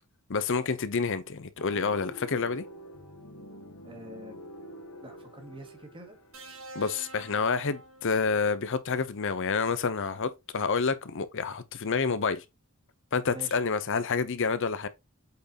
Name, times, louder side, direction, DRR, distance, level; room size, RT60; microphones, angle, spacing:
voice 1, 0.3-2.6 6.7-12.4 13.1-14.9, left 5 dB, 60° left, 0.7 m, -28 dB
sound 1, 1.6-7.4, left 1 dB, 85° left, 1.4 m, -47 dB
voice 2, 3.8-4.4 5.0-6.2 13.3-13.6, right 2 dB, 25° right, 1.9 m, -45 dB
sound 2, 6.3-8.6 9.9-10.1, right 2 dB, 60° right, 1.8 m, -47 dB
8.2 x 4.5 x 2.8 m
head